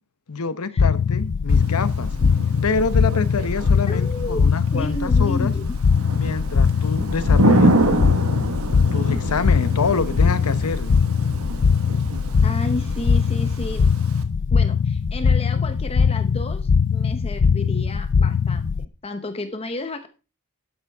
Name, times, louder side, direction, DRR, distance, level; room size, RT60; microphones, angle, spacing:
voice 1, 0.3-2.1 2.6-5.5 6.1-8.1 8.9-11.0, left 4 dB, 85° left, 0.9 m, -26 dB
sound 1, 0.8-18.8, left 5 dB, 55° left, 0.4 m, -20 dB
Thunder / Rain, 1.5-14.2, right 1 dB, 70° right, 1.4 m, -27 dB
voice 2, 3.9-4.4 4.7-5.7 12.4-13.9 14.5-20.1, left 1 dB, 25° left, 0.9 m, -32 dB
12.0 x 8.7 x 3.5 m
head